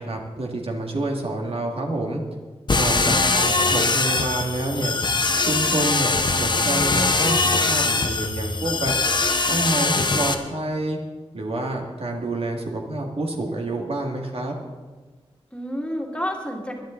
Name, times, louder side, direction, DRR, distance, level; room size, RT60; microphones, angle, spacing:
voice 1, 0.0-2.2 2.7-5.0 5.4-8.9 9.5-11.0 11.3-14.5, right 2 dB, 65° right, 1 dB, 2.0 m, -28 dB
sound 1, 2.7-10.3, left 3 dB, 45° left, 1.0 m, -22 dB
voice 2, 2.8-3.5 15.5-16.7, equal, 10° left, 0 dB, 2.1 m, -31 dB
21.0 x 10.5 x 3.8 m, 1.4 s
wide cardioid pair, 100°, 11 cm